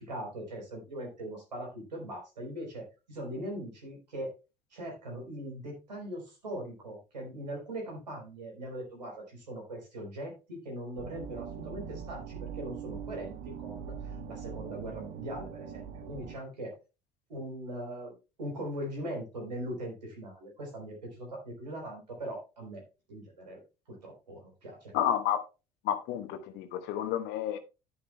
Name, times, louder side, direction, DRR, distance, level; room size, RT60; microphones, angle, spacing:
voice 1, 0.0-4.3 4.7-16.7 17.3-18.1 18.4-22.8 23.1-23.6 23.9-24.9, right 1 dB, 80° right, 3.8 m, -40 dB
sound 1, 11.0-16.3, right 7 dB, 60° right, 1.0 m, -42 dB
voice 2, 24.9-25.4 25.8-27.6, left 10 dB, 55° left, 1.2 m, -30 dB
11.0 x 10.0 x 2.3 m
figure-of-eight pair, 60°, 21 cm